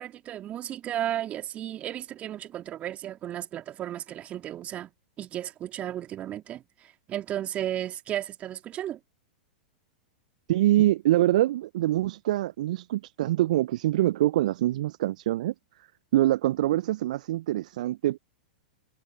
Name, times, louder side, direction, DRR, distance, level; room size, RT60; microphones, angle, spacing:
voice 1, 0.0-4.9 5.2-9.0 10.8-10.9, right 12 dB, 30° right, 2.5 m, -34 dB
voice 2, 10.5-15.5 16.1-18.2, right 14 dB, 60° right, 0.5 m, -24 dB
figure-of-eight pair, 95°, 5 cm